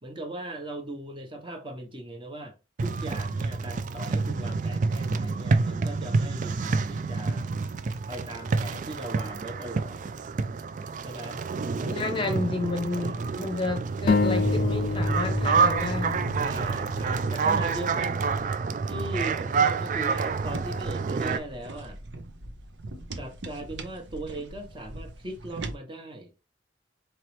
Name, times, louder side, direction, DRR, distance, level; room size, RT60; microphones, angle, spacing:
voice 1, 0.0-2.5 2.8-7.5 8.1-10.1 11.0-11.4 11.8-12.7 13.0-13.2 16.4-18.2 18.9-22.0 23.2-26.3, right 1 dB, 25° right, 0.9 m, -39 dB
sound 1, 2.8-21.4, right 4 dB, 40° right, 0.3 m, -28 dB
voice 2, 11.9-16.2, left 2 dB, 25° left, 0.7 m, -31 dB
sound 2, 14.1-17.7, left 4 dB, 40° left, 0.3 m, -28 dB
sound 3, 20.3-25.8, right 2 dB, 70° right, 0.7 m, -40 dB
4.5 x 3.0 x 3.1 m
head